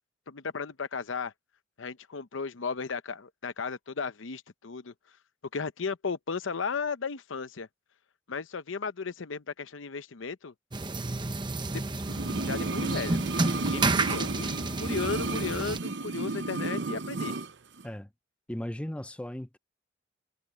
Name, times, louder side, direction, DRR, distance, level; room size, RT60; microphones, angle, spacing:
voice 1, 0.3-1.3 1.8-4.9 5.5-7.7 8.3-10.5 11.7-11.8 12.3-13.2 13.6-14.5 14.8-17.3, left 5 dB, 85° left, 0.8 m, -35 dB
sound 1, 10.7-15.8, right 3 dB, 25° right, 0.9 m, -30 dB
sound 2, 12.0-17.5 17.8-17.9, right 3 dB, 65° right, 0.7 m, -33 dB
voice 2, 18.5-19.6, left 1 dB, 5° left, 0.4 m, -36 dB
head